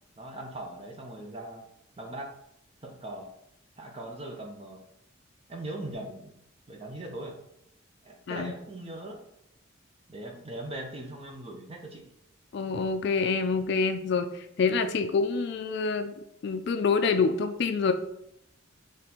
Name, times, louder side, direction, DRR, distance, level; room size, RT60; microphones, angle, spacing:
voice 1, 0.2-1.6 2.0-2.3 2.8-3.3 3.8-4.8 5.5-6.4 6.7-7.3 8.0-9.2 10.1-12.0, right 1 dB, 30° right, 1 dB, 0.7 m, -40 dB
voice 2, 12.5-14.3 14.6-16.1 16.4-17.9, left 5 dB, 55° left, 9 dB, 0.3 m, -26 dB
3.8 x 3.2 x 4.3 m, 0.77 s
head